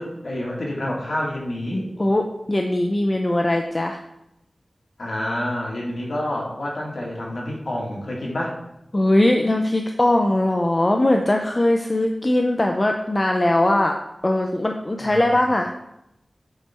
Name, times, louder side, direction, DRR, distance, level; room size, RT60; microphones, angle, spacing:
voice 1, 0.0-1.9 5.0-8.5 15.0-15.2, left 1 dB, 70° left, -3 dB, 1.8 m, -28 dB
voice 2, 2.5-4.0 8.9-14.0 14.2-15.7, left 1 dB, 35° left, 3 dB, 0.5 m, -20 dB
7.9 x 3.4 x 4.3 m, 0.84 s
wide cardioid pair, 55°, 0 cm